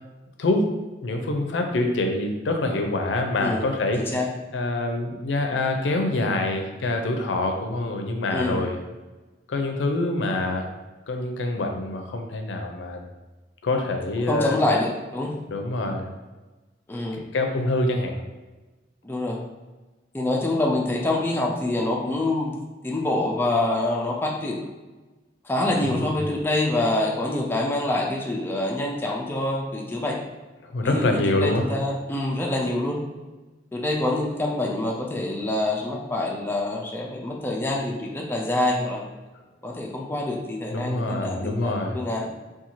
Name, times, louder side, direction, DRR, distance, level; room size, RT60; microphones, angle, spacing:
voice 1, 0.4-0.7 1.0-4.2 4.5-8.8 9.5-10.6 11.1-13.0 13.6-14.6 15.5-16.1 17.1-18.2 25.9-26.1 30.6-31.7 40.7-42.0, left 2 dB, 80° left, 4 dB, 0.4 m, -25 dB
voice 2, 8.3-8.6 14.3-15.3 16.9-17.2 19.0-19.4 20.1-22.5 22.8-24.6 25.5-30.2 30.8-33.0 33.7-39.0 39.6-42.3, left 2 dB, 10° left, -2 dB, 0.3 m, -26 dB
2.6 x 2.3 x 2.9 m, 1.2 s
head